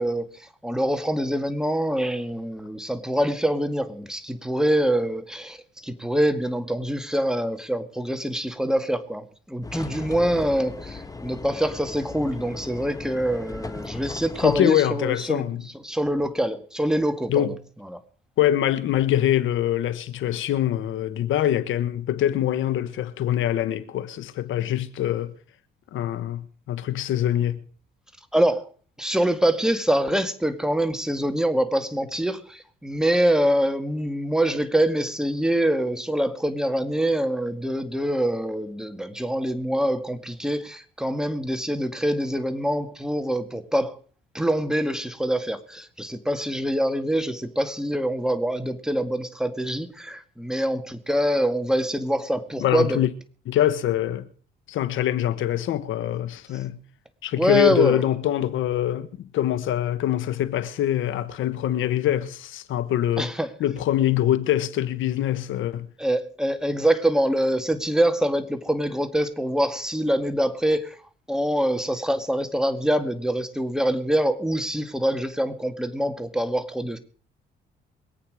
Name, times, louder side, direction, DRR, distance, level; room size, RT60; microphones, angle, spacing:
voice 1, 0.0-5.6 5.8-15.4 15.8-17.5 17.9-18.0 28.3-28.6 29.0-44.0 44.3-53.0 57.4-58.0 63.2-63.5 66.0-71.0 71.3-77.0, right 1 dB, 5° right, 1.9 m, -25 dB
sound 1, 9.6-14.6, left 3 dB, 15° left, 1.6 m, -37 dB
voice 2, 14.4-15.6 17.3-17.6 18.4-25.3 25.9-27.6 52.6-53.1 53.4-54.3 54.7-56.8 57.2-63.3 63.6-65.9, left 12 dB, 80° left, 1.3 m, -24 dB
23.5 x 8.7 x 4.9 m
cardioid pair, 90°, 20 cm